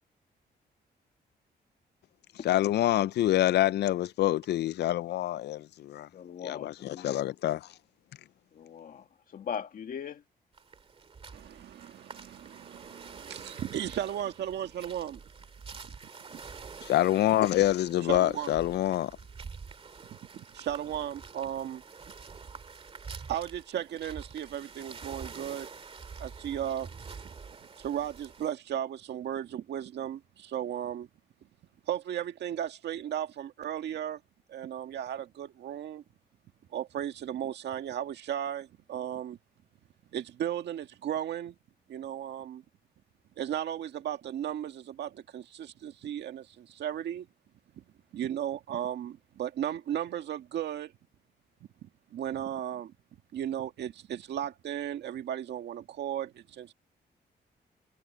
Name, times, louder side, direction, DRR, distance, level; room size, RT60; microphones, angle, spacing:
voice 1, 2.5-6.1 6.4-7.6 16.9-19.1, left 14 dB, 75° left, 0.4 m, -26 dB
voice 2, 6.1-7.3 8.5-10.2, left 8 dB, 55° left, 2.0 m, -40 dB
sound 1, 10.5-28.5, right 5 dB, 35° right, 2.0 m, -47 dB
voice 3, 11.3-15.2 15.8-16.0 16.3-16.4 18.1-18.5 20.1-21.8 23.3-25.7 26.2-26.9 27.8-31.1 31.9-34.2 34.5-36.0 36.7-39.4 40.1-41.6 41.9-42.6 43.4-47.3 47.8-47.9 48.1-50.9 51.8-52.9 53.3-56.7, right 10 dB, 80° right, 1.8 m, -35 dB
wide cardioid pair, 155°, 17 cm